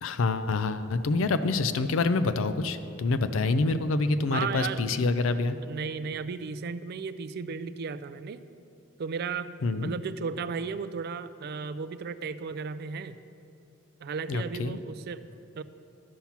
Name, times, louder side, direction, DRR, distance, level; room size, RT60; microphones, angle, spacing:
voice 1, 0.0-5.6 9.6-9.9 14.3-14.8, left 3 dB, 75° left, 12 dB, 0.5 m, -26 dB
voice 2, 4.3-4.8 5.6-8.4 9.0-9.6 9.8-13.2 14.0-15.6, right 5 dB, 50° right, 14 dB, 0.3 m, -35 dB
12.0 x 5.7 x 5.9 m, 2.6 s
head